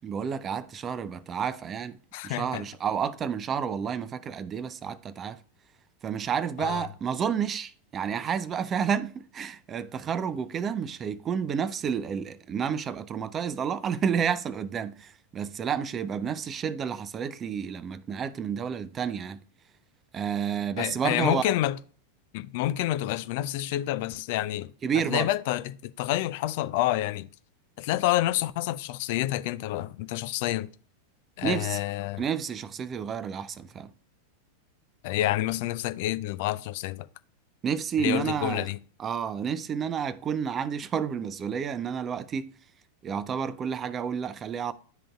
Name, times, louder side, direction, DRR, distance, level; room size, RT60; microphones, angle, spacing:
voice 1, 0.0-2.0 2.2-5.4 6.0-19.4 20.1-21.5 24.8-25.3 31.4-31.8 32.2-33.9 37.6-38.7 39.0-42.5 43.0-44.7, right 7 dB, 25° right, 0.4 m, -30 dB
voice 2, 2.1-2.6 6.6-6.9 20.8-21.8 22.3-24.7 25.1-27.3 27.8-30.7 31.4-32.2 35.0-37.1 38.0-38.8, left 15 dB, 50° left, 0.3 m, -28 dB
11.5 x 3.8 x 2.3 m
figure-of-eight pair, 90°, 0 cm